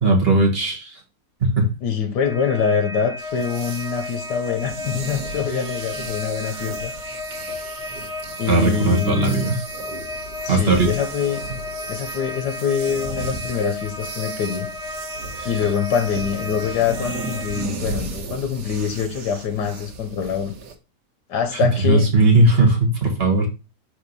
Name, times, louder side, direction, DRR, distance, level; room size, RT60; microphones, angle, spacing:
voice 1, 0.0-0.9 1.4-1.7 8.5-9.6 10.5-10.9 15.4-15.5 21.5-23.5, right 2 dB, 35° right, 2.0 m, -18 dB
voice 2, 1.8-6.9 8.4-9.5 10.4-11.4 11.9-14.7 15.4-20.6 21.3-22.1, left 7 dB, 90° left, 1.5 m, -24 dB
sound 1, 2.2-17.6, left 2 dB, 5° right, 1.1 m, -33 dB
sound 2, 3.2-20.7, right 3 dB, 85° right, 1.7 m, -35 dB
5.1 x 3.9 x 5.4 m
omnidirectional pair, 1.7 m